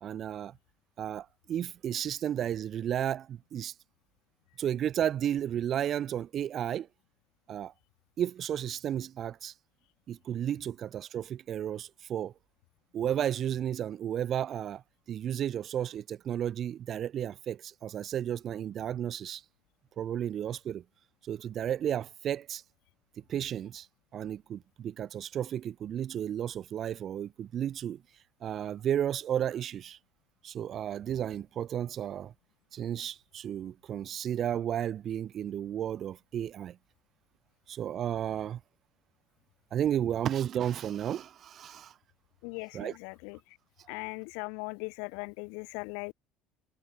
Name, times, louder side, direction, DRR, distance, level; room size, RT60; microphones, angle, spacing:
voice 1, 0.0-0.6 1.0-3.7 4.6-6.9 7.5-7.7 8.2-9.5 10.1-12.3 12.9-14.8 15.1-19.4 20.0-20.8 21.2-22.6 23.2-23.9 24.1-28.0 28.4-30.0 30.4-32.3 32.7-36.8 37.7-38.6 39.7-41.9 42.7-43.0 43.8-44.0, right 10 dB, 50° right, 0.5 m, -33 dB
voice 2, 42.4-43.4 43.9-46.1, left 38 dB, 80° left, 0.5 m, -39 dB
supercardioid pair, 90°, 0 cm